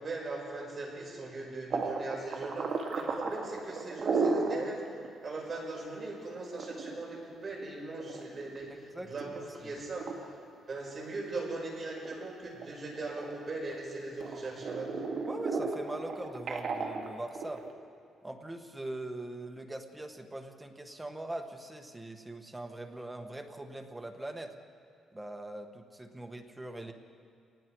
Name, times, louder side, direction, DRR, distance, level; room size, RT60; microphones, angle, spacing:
voice 1, 0.0-4.8 5.2-8.7 9.1-10.1 10.7-15.1, right 3 dB, 25° right, -2 dB, 5.4 m, -39 dB
sound 1, 1.7-4.6 5.0-5.1 5.5-5.6 6.4-8.7 9.2-9.6 10.0-10.1 10.7-11.6 11.9-13.8 14.2-17.7, right 4 dB, 45° right, 2.3 m, -34 dB
voice 2, 8.9-9.3 9.6-9.7 15.3-17.7 18.2-24.5 25.1-26.9, right 1 dB, 10° right, 4 dB, 1.3 m, -41 dB
29.0 x 19.5 x 4.7 m, 2.4 s
cardioid pair, 170°, 0 cm